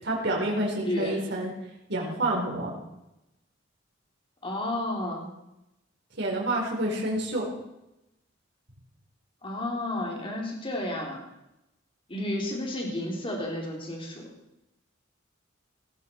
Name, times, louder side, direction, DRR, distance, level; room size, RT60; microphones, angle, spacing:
voice 1, 0.0-1.5 1.9-2.7 6.2-7.5, right 1 dB, 60° right, -2 dB, 4.5 m, -28 dB
voice 2, 0.8-1.2 4.4-5.3 9.4-11.2 12.1-14.3, left 1 dB, 25° left, 0 dB, 3.7 m, -32 dB
18.0 x 15.0 x 4.7 m, 0.90 s
head